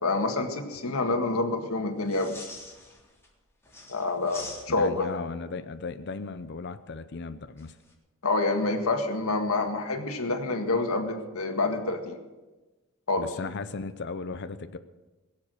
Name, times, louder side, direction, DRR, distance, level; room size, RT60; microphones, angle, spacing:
voice 1, 0.0-2.3 3.9-5.2 8.2-12.2 13.1-13.3, left 3 dB, 85° left, 4 dB, 1.8 m, -27 dB
sound 1, 2.0-3.3 3.6-5.1 7.6-7.9, left 3 dB, 10° left, 3.7 m, -45 dB
voice 2, 4.8-7.7 13.2-14.8, left 4 dB, 55° left, 10 dB, 0.6 m, -36 dB
22.0 x 7.5 x 6.4 m, 1.2 s
head